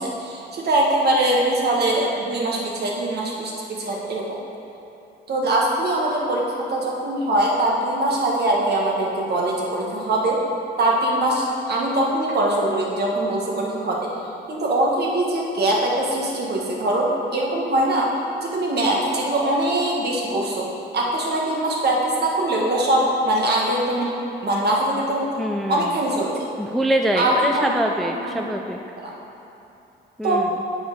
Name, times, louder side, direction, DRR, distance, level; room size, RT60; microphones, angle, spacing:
voice 1, 0.0-4.4 5.3-10.4 10.8-14.0 14.5-18.1 18.4-20.7 20.9-24.1 24.4-25.3 25.7-26.3 27.1-28.3 29.0-29.1 30.2-30.4, right 1 dB, 55° right, -2 dB, 1.5 m, -22 dB
voice 2, 25.4-25.9 26.6-28.8 30.2-30.5, right 1 dB, ahead, 3 dB, 0.4 m, -24 dB
7.5 x 4.8 x 5.2 m, 2.9 s
cardioid pair, 90°, 20 cm